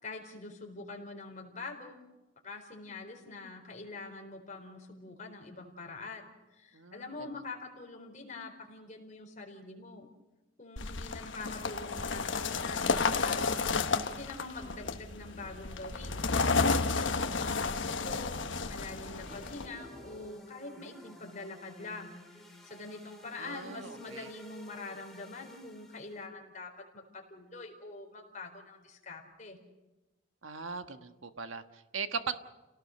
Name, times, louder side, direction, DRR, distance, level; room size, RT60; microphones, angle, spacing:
voice 1, 0.0-2.0 2.4-10.1 10.6-13.5 14.0-17.8 18.0-18.4 18.7-22.2 22.6-29.6, left 3 dB, 35° left, 2 dB, 4.3 m, -45 dB
voice 2, 6.7-7.3 16.8-17.1 23.4-24.3 30.4-32.3, right 5 dB, 85° right, 8 dB, 1.4 m, -40 dB
sound 1, 10.8-19.7, left 4 dB, 70° left, 1.2 m, -32 dB
sound 2, 14.6-20.2, equal, 30° right, 7.8 m, -54 dB
sound 3, 19.1-26.3, equal, ahead, 3.1 m, -53 dB
29.5 x 18.0 x 6.6 m, 1.1 s
head